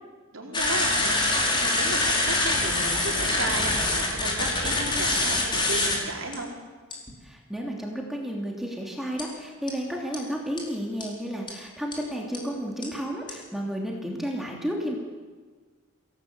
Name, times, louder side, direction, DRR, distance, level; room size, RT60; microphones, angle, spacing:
voice 1, 0.3-6.6, right 2 dB, 65° right, 0 dB, 4.2 m, -34 dB
sound 1, 0.5-6.0 6.3-6.4 6.9-7.1 9.2-9.3 9.7-9.8 10.1-10.2 10.6-10.7 11.0-11.1 11.5-11.6 11.9-12.0 12.3-12.4 12.8-12.9 13.3-13.4, left 2 dB, 20° left, 4.6 m, -25 dB
voice 2, 7.2-15.0, equal, ahead, -1 dB, 2.8 m, -32 dB
26.5 x 18.0 x 8.1 m, 1.4 s
head